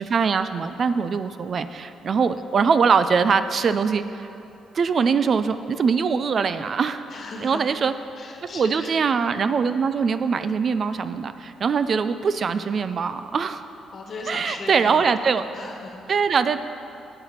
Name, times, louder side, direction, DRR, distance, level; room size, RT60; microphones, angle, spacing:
voice 1, 0.0-4.3 4.7-7.0 7.4-7.9 8.5-13.6 14.3-15.4 16.1-16.6, right 5 dB, 50° right, 12 dB, 0.4 m, -22 dB
voice 2, 7.1-7.8 8.2-8.9 13.9-16.3, left 3 dB, 50° left, 2 dB, 1.3 m, -38 dB
8.1 x 7.8 x 5.8 m, 2.7 s
cardioid pair, 90°, 0 cm